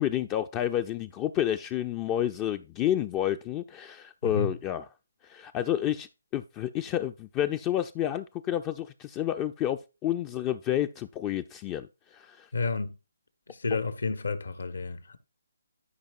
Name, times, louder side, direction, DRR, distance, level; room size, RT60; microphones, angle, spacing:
voice 1, 0.0-4.8 5.2-6.1 6.3-12.5, left 11 dB, 20° left, 0.3 m, -30 dB
voice 2, 4.2-4.6 12.5-13.0 13.5-15.2, left 4 dB, 75° left, 1.2 m, -31 dB
13.5 x 5.1 x 2.5 m
figure-of-eight pair, 150°, 0 cm